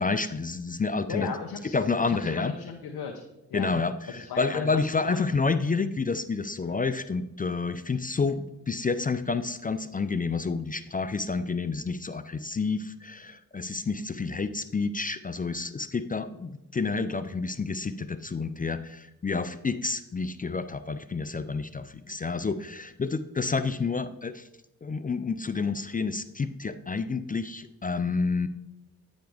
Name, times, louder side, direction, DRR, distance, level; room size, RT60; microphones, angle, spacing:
voice 1, 0.0-1.3 1.7-2.5 3.5-24.5 24.8-28.5, left 4 dB, 20° left, 12 dB, 0.4 m, -29 dB
voice 2, 1.1-1.8 2.1-5.3 6.6-6.8 14.0-14.1, left 6 dB, 65° left, 3 dB, 0.9 m, -37 dB
8.8 x 5.2 x 3.5 m, 0.89 s
supercardioid pair, 40°, 40 cm